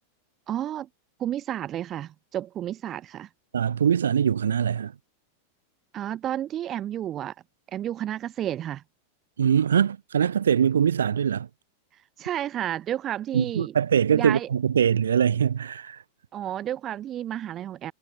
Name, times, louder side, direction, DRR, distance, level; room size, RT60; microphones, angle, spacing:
voice 1, 0.5-0.9 1.2-3.3 5.9-7.3 7.7-8.8 12.2-13.7 14.1-14.5 16.3-17.9, right 11 dB, 35° right, 2.5 m, -31 dB
voice 2, 3.5-4.9 9.4-11.5 13.3-16.0, right 8 dB, 75° right, 4.6 m, -22 dB
figure-of-eight pair, 95°, 0 cm